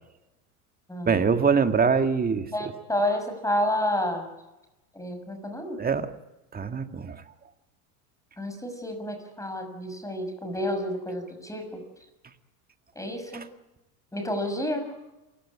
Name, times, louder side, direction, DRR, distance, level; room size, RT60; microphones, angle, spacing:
voice 1, 1.1-2.5 5.8-6.1 6.5-7.2 13.3-13.5, right 5 dB, 20° right, 8 dB, 1.9 m, -24 dB
voice 2, 2.5-4.3 4.9-5.8 8.4-11.8 13.0-13.5 14.1-14.9, left 1 dB, 5° left, 7 dB, 6.2 m, -30 dB
27.5 x 16.5 x 9.8 m, 1.0 s
supercardioid pair, 110°, 46 cm